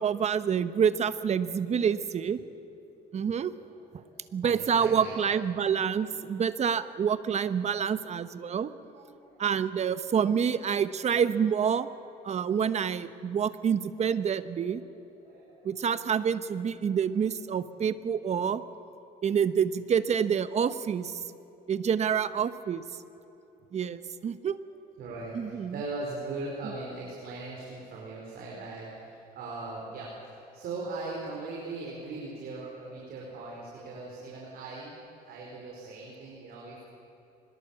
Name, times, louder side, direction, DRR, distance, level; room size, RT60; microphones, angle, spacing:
voice 1, 0.0-2.4 3.1-3.5 4.3-8.7 9.4-11.9 12.2-14.8 15.6-18.6 19.2-21.2 21.7-22.8 23.7-24.6 25.3-25.7, right 7 dB, 40° right, 13 dB, 1.0 m, -27 dB
voice 2, 3.6-5.2 8.6-9.4 13.9-14.0 14.5-16.2 16.6-17.0 25.0-35.0 35.2-36.8, right 3 dB, 65° right, -3 dB, 4.9 m, -40 dB
24.0 x 21.0 x 7.3 m, 3.0 s
cardioid pair, 110°, 17 cm